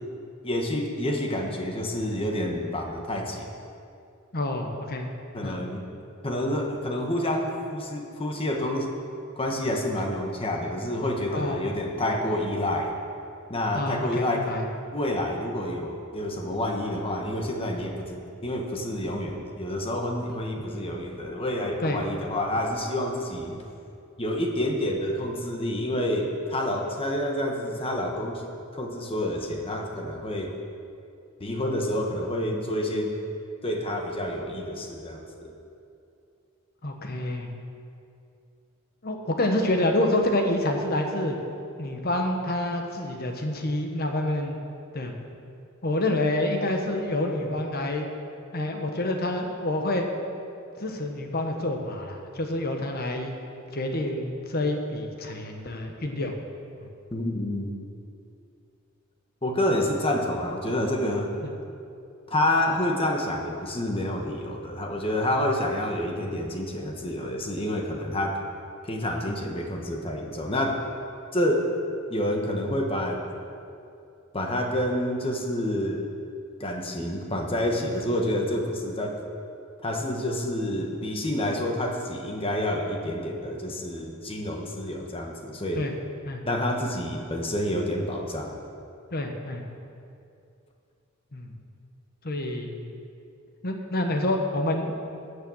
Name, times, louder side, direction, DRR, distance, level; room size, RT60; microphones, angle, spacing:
voice 1, 0.4-3.5 5.3-5.8 6.2-8.9 9.4-12.9 13.5-14.6 14.9-23.6 24.2-28.4 28.7-30.5 31.4-33.2 33.6-35.5 57.1-57.7 59.4-61.3 62.3-68.4 68.8-70.8 71.3-71.7 72.1-73.2 74.3-76.0 76.6-79.2 79.8-85.8 86.4-88.5, left 1 dB, 25° left, 1 dB, 1.3 m, -28 dB
voice 2, 4.3-5.1 5.4-5.6 11.3-11.6 13.7-14.6 20.6-20.7 21.8-22.0 36.8-37.5 39.0-41.3 41.8-44.6 44.9-45.1 45.8-48.1 48.5-50.1 50.8-53.4 53.7-56.3 61.4-61.5 85.7-85.9 86.2-86.4 89.1-89.6 91.3-91.5 92.2-92.9 93.6-94.9, left 1 dB, 45° left, 3 dB, 1.3 m, -27 dB
16.0 x 6.7 x 6.4 m, 2.6 s
head